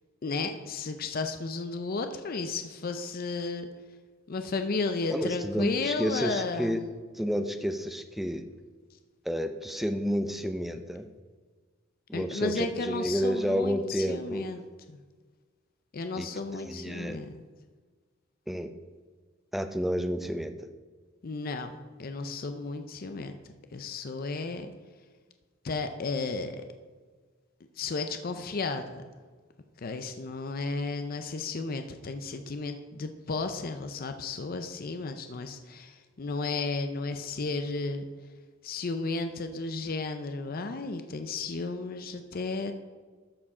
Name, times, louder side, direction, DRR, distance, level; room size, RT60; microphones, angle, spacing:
voice 1, 0.2-3.7 4.3-6.8 12.1-14.6 14.9-15.0 15.9-17.4 21.2-21.7 22.0-23.3 23.7-24.7 25.6-26.6 27.8-29.0 29.8-38.1 38.6-42.7, left 3 dB, 45° left, 8 dB, 0.5 m, -33 dB
voice 2, 5.1-6.8 7.1-8.4 9.3-11.1 12.1-14.5 16.2-16.3 16.6-17.2 18.5-18.7 19.5-20.5, equal, ahead, 8 dB, 0.5 m, -30 dB
13.0 x 4.8 x 4.9 m, 1.5 s
head